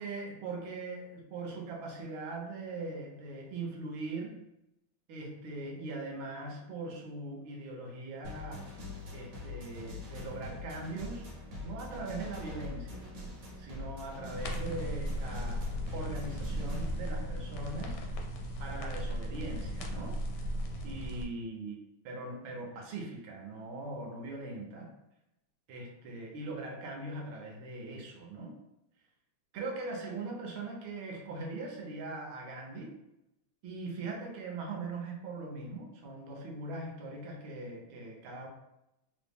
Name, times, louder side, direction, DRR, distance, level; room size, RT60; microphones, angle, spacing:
voice 1, 0.0-4.4 5.1-8.7 9.1-11.2 11.6-13.1 13.6-18.0 18.6-20.2 20.8-21.8 22.0-24.9 25.7-28.6 29.5-33.0 33.6-38.5, right 2 dB, 80° right, 0 dB, 1.6 m, -41 dB
sound 1, 8.2-17.0, left 2 dB, 50° right, 0.9 m, -43 dB
sound 2, 14.3-21.3, equal, 85° left, 1.5 m, -36 dB
4.2 x 2.0 x 3.4 m, 0.86 s
omnidirectional pair, 2.2 m